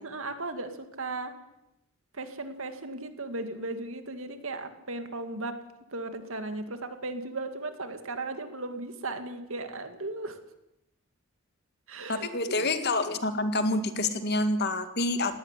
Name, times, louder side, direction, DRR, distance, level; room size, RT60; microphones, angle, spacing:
voice 1, 0.0-1.3 2.1-5.5 5.9-10.4 11.9-12.9, right 2 dB, 70° right, 8 dB, 2.4 m, -36 dB
voice 2, 12.1-15.4, left 2 dB, 50° left, 9 dB, 1.9 m, -27 dB
18.5 x 15.0 x 9.9 m, 0.89 s
head